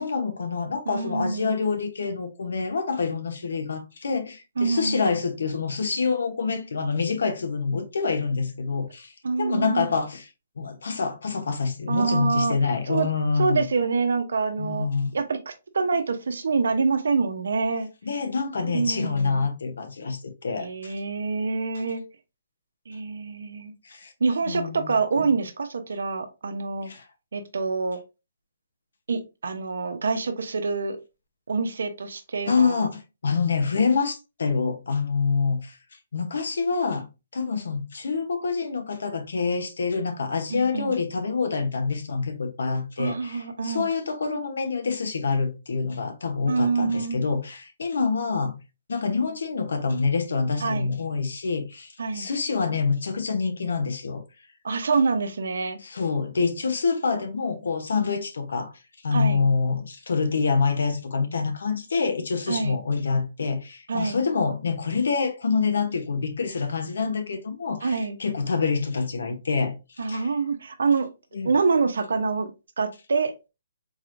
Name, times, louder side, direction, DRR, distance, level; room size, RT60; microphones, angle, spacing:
voice 1, 0.0-9.1 9.4-10.3 10.6-13.7 14.6-15.1 18.0-21.0 23.8-24.1 24.5-25.0 26.8-27.1 32.5-35.8 36.1-48.6 48.9-54.2 55.8-58.7 59.0-69.7 70.1-70.3 71.3-71.5, left 4 dB, 80° left, 0.9 m, -26 dB
voice 2, 0.9-1.6 4.6-5.1 9.2-9.9 11.9-12.6 12.9-13.1 13.4-14.9 15.1-17.9 18.7-19.5 20.6-22.0 22.9-23.7 24.2-26.9 27.3-28.0 29.1-31.0 31.5-32.8 40.5-41.0 43.0-43.9 46.5-47.3 50.6-50.9 52.0-52.3 54.6-55.8 59.1-59.5 62.5-62.8 63.9-64.2 67.8-68.2 70.0-71.1 71.4-72.5 72.8-73.3, right 4 dB, 80° right, 0.7 m, -26 dB
4.0 x 3.1 x 2.5 m
hypercardioid pair, 155°, 0 cm